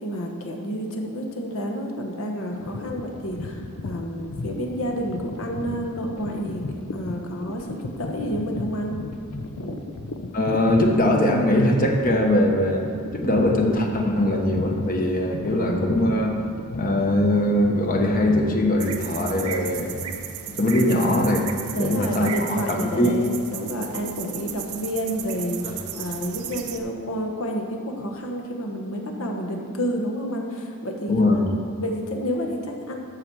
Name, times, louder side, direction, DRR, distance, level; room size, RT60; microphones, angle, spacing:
voice 1, 0.0-6.6 6.9-8.9 9.6-9.8 15.5-16.0 20.9-21.3 21.7-33.0, equal, 65° left, 2 dB, 1.3 m, -30 dB
sound 1, 2.5-18.6, left 2 dB, 80° left, 0.6 m, -35 dB
voice 2, 10.3-12.8 13.1-16.4 16.7-20.0 20.6-21.4 21.8-22.6 23.0-23.1 25.6-25.7 31.1-31.4, left 1 dB, 40° left, 1 dB, 1.2 m, -21 dB
sound 2, 18.8-26.8, right 9 dB, 80° right, 0.7 m, -35 dB
13.5 x 5.9 x 4.8 m, 2.4 s
head